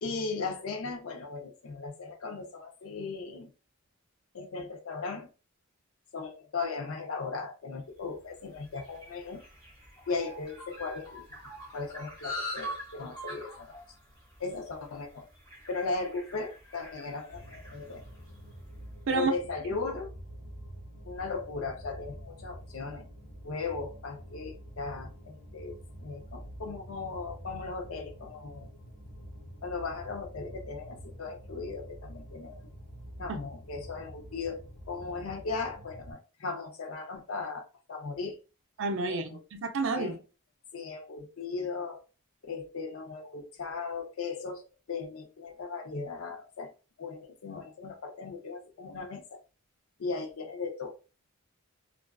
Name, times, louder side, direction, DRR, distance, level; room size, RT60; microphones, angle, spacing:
voice 1, 0.0-3.5 4.3-5.3 6.1-9.4 10.1-11.2 11.7-13.7 14.4-15.3 15.7-18.0 19.1-20.1 21.0-23.1 23.4-28.7 29.6-32.6 33.2-34.6 34.9-38.4 39.1-39.4 39.9-40.2 40.7-42.0 42.5-46.7 47.0-49.4 50.0-51.0, left 4 dB, 75° left, 0.5 m, -37 dB
sound 1, 8.0-18.6, equal, 20° left, 1.0 m, -44 dB
sound 2, 17.3-36.1, equal, 50° left, 1.2 m, -47 dB
voice 2, 38.8-40.2, right 4 dB, 60° right, 0.5 m, -30 dB
2.4 x 2.3 x 2.2 m
head